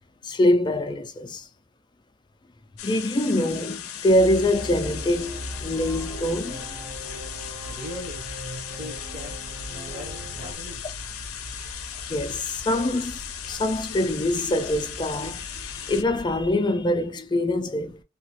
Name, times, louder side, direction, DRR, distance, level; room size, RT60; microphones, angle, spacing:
voice 1, 0.2-1.5 2.8-6.7 12.0-18.0, left 1 dB, 20° left, 0.3 m, -24 dB
sound 1, 2.8-16.0, left 10 dB, 85° left, 0.5 m, -37 dB
sound 2, 4.0-16.5, right 1 dB, 70° right, 0.6 m, -41 dB
sound 3, 4.5-10.5, equal, 20° right, 0.9 m, -41 dB
voice 2, 7.7-8.3 8.7-9.4 9.9-11.0, equal, 35° right, 1.1 m, -40 dB
2.8 x 2.4 x 2.8 m
head